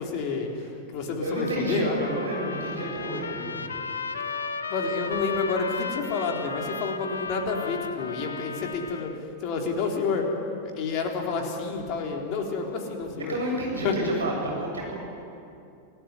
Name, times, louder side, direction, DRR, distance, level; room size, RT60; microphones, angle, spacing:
voice 1, 0.0-0.5 0.9-2.0 4.1-4.3 4.7-9.1 9.4-13.3 13.8-13.9, left 4 dB, 40° left, 2 dB, 3.7 m, -29 dB
voice 2, 0.6-3.7 13.2-15.0, right 1 dB, 70° right, 0 dB, 7.8 m, -30 dB
Trumpet, 1.3-9.2, left 5 dB, 70° left, 1.1 m, -35 dB
Trumpet 2, 3.7-7.1, right 1 dB, 90° left, 1.3 m, -42 dB
27.5 x 16.5 x 9.8 m, 2.5 s
figure-of-eight pair, 90°, 0 cm